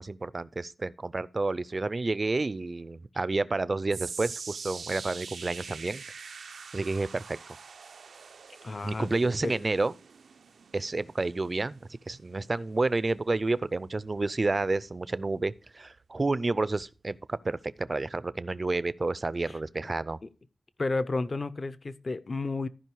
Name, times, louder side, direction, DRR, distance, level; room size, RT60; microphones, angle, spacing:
voice 1, 0.0-6.0 6.7-7.4 8.8-9.9 10.7-11.8 12.1-20.2, right 3 dB, 30° right, 0.4 m, -30 dB
sound 1, 3.9-16.2 16.5-16.9 17.5-17.6, right 5 dB, 85° right, 0.5 m, -45 dB
voice 2, 8.6-9.6 19.4-19.6 20.2-20.3 20.8-22.7, left 3 dB, 40° left, 0.5 m, -32 dB
14.0 x 5.3 x 4.6 m
wide cardioid pair, 135°, 0 cm